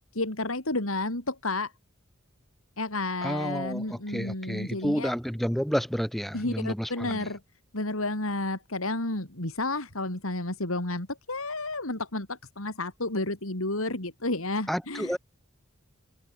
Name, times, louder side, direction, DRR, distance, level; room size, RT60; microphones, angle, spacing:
voice 1, 0.1-1.7 2.8-5.1 6.3-7.4 7.7-15.2, left 2 dB, 85° left, 4.4 m, -31 dB
voice 2, 3.2-7.3 14.7-15.2, equal, ahead, 3.8 m, -30 dB
head